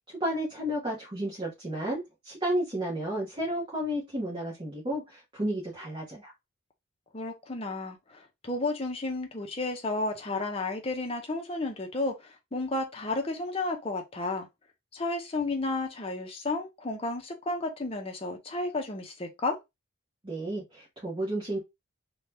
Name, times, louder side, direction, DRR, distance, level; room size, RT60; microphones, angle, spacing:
voice 1, 0.2-6.3 20.2-21.6, right 1 dB, 25° right, 0.9 m, -32 dB
voice 2, 7.1-14.5 14.9-19.6, left 2 dB, 25° left, 0.6 m, -32 dB
2.8 x 2.2 x 3.3 m
head